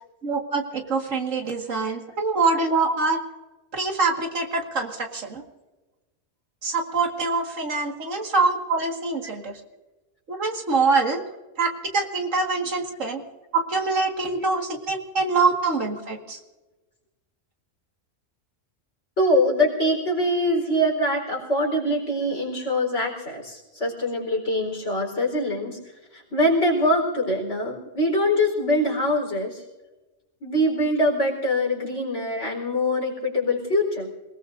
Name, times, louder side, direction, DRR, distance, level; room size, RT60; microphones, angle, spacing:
voice 1, 0.2-3.2 3.7-5.4 6.6-9.6 10.3-11.2 11.6-13.2 13.5-16.4, right 4 dB, 85° right, 2 dB, 2.3 m, -24 dB
voice 2, 19.2-25.8 26.1-29.6 30.4-34.1, left 1 dB, 65° left, 0 dB, 4.7 m, -23 dB
27.0 x 19.0 x 2.6 m, 1.1 s
omnidirectional pair, 1.3 m